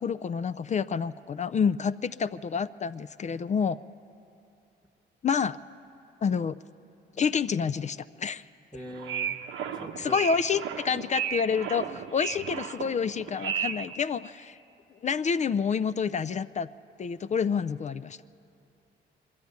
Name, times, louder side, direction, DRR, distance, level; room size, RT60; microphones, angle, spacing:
voice 1, 0.0-3.8 5.2-5.6 6.2-6.6 7.2-8.4 10.0-14.6 15.0-16.7 17.0-18.2, left 6 dB, 35° left, 14 dB, 0.4 m, -28 dB
voice 2, 8.7-9.3 9.7-10.3, equal, ahead, 1 dB, 1.2 m, -42 dB
sound 1, 8.9-13.9, right 8 dB, 85° right, 1.0 m, -34 dB
21.5 x 13.0 x 9.4 m, 2.8 s
cardioid pair, 90°, 20 cm